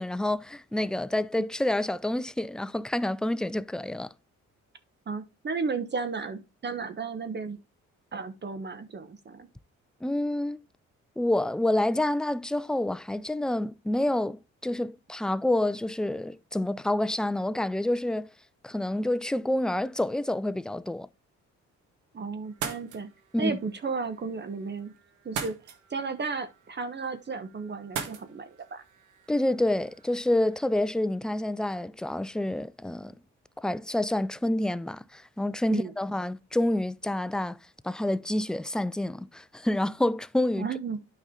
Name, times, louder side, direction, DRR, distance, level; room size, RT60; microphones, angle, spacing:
voice 1, 0.0-4.1 10.0-10.6 11.2-18.3 18.6-21.1 23.3-23.6 29.3-33.1 33.6-37.6 37.8-40.7, left 1 dB, 5° left, 0.3 m, -28 dB
voice 2, 5.1-7.6 8.1-9.5 22.1-23.1 23.4-24.9 25.2-25.6 25.9-28.8 35.7-35.9 40.6-41.0, right 4 dB, 35° right, 1.0 m, -34 dB
sound 1, 22.4-30.8, right 7 dB, 85° right, 1.6 m, -42 dB
9.2 x 5.5 x 3.7 m
cardioid pair, 90°, 30 cm